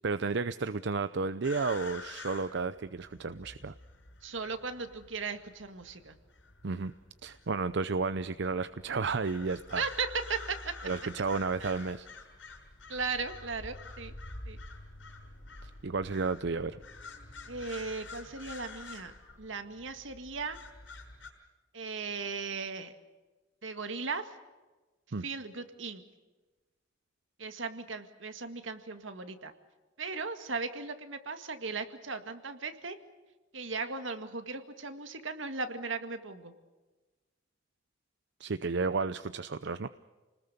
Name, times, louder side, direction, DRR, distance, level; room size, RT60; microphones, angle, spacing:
voice 1, 0.0-3.7 6.6-6.9 7.2-9.8 10.8-12.1 15.6-16.8 25.1-25.2 38.4-39.9, right 4 dB, 65° right, 13 dB, 0.6 m, -32 dB
sound 1, 1.4-21.3, left 3 dB, 70° left, 6.1 m, -48 dB
voice 2, 4.2-6.2 9.7-10.7 11.6-11.7 12.9-14.1 14.5-14.6 17.5-19.1 19.4-20.6 21.7-22.9 23.6-24.3 25.2-26.0 27.4-29.5 30.0-33.0 33.5-36.5, right 4 dB, 85° right, 8 dB, 2.0 m, -37 dB
29.0 x 20.0 x 6.8 m, 1.2 s
head